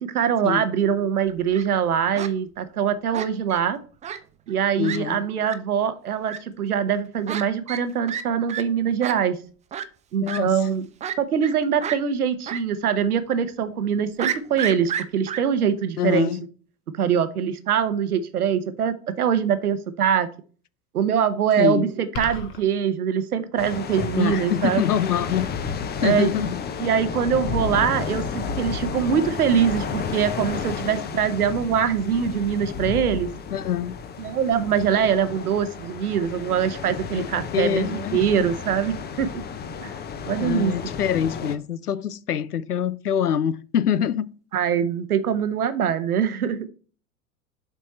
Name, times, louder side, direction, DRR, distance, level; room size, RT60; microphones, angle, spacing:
voice 1, 0.0-3.8 4.5-9.4 10.1-10.9 11.2-16.3 16.9-20.3 20.9-24.9 26.0-26.3 26.8-33.3 34.2-39.4 39.8-39.9 40.3-40.9 44.5-46.6, right 8 dB, 75° right, 1.0 m, -23 dB
Fowl, 1.3-1.7 2.1-2.3 3.1-3.6 4.0-4.2 4.5-4.6 4.8-5.0 5.4-5.5 6.3-6.4 7.3-7.4 7.7-8.2 8.5-8.6 9.0-9.1 9.7-9.9 10.3-10.4 11.0-11.5 11.8-12.0 12.5-12.6 12.9-13.0 14.2-15.4, right 9 dB, 15° right, 0.5 m, -30 dB
voice 2, 4.8-5.2 10.2-10.5 16.0-16.4 21.6-21.9 24.2-25.5 26.0-26.6 33.5-34.0 37.1-37.3 37.5-38.2 40.4-44.3, left 9 dB, 90° left, 0.6 m, -24 dB
sound 1, 22.1-22.6, left 3 dB, 45° left, 1.6 m, -32 dB
sound 2, 23.6-41.5, left 6 dB, 20° left, 0.8 m, -32 dB
7.3 x 4.5 x 4.3 m
figure-of-eight pair, 85°, 44 cm